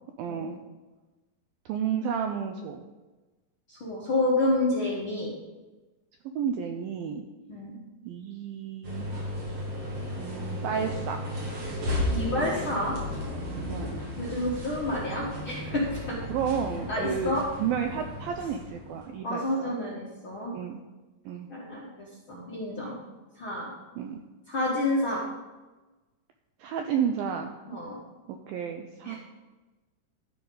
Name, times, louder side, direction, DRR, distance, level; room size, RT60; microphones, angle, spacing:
voice 1, 0.2-0.6 1.7-2.8 6.4-7.2 8.0-9.1 10.2-11.3 13.7-13.9 16.3-17.3 17.6-19.8 20.5-20.8 21.3-21.5 24.0-24.2 26.6-27.6 28.3-29.2, right 7 dB, 85° right, 5 dB, 2.1 m, -31 dB
voice 2, 3.7-5.4 7.5-7.8 12.1-13.0 14.2-16.2 16.9-17.4 19.2-20.6 21.5-23.0 23.4-23.7 24.5-25.2 27.7-28.0 29.0-29.2, left 1 dB, 55° left, -5 dB, 1.4 m, -29 dB
sound 1, 8.8-19.1, left 1 dB, 45° right, 2.6 m, -34 dB
12.5 x 10.0 x 3.9 m, 1.2 s
omnidirectional pair, 4.9 m